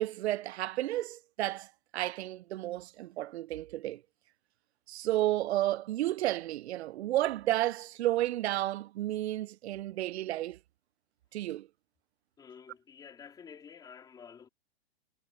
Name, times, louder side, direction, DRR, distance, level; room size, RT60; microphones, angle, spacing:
voice 1, 0.0-4.0 4.9-10.6 11.3-11.7, right 14 dB, 75° right, 0.5 m, -32 dB
voice 2, 12.4-14.5, left 7 dB, 10° left, 3.8 m, -50 dB
hypercardioid pair, 160°, 33 cm